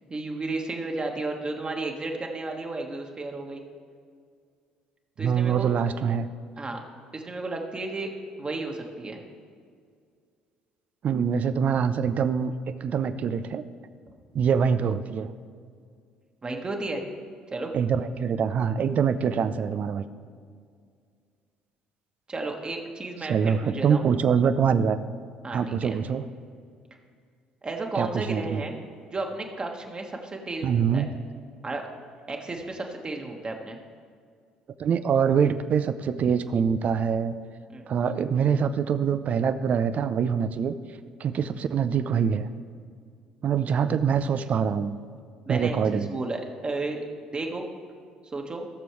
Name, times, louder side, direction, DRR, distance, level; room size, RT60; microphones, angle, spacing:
voice 1, 0.1-3.6 5.2-6.0 6.6-6.8 7.1-8.1 8.4-9.2 16.4-17.0 17.5-17.7 22.3-24.0 25.4-26.0 27.6-28.7 29.1-31.1 31.6-31.8 32.3-33.8 37.7-37.8 45.5-47.0 47.3-47.6 48.3-48.7, right 2 dB, 30° right, 2 dB, 1.5 m, -33 dB
voice 2, 5.2-6.3 11.0-13.6 14.3-15.3 17.7-20.0 23.2-25.0 25.5-26.3 28.0-28.6 30.6-31.1 34.8-37.3 37.9-40.8 41.2-42.5 43.4-45.0 45.5-46.1, right 7 dB, 50° right, 12 dB, 0.5 m, -24 dB
16.5 x 6.8 x 3.2 m, 2.1 s
hypercardioid pair, 55°, 3 cm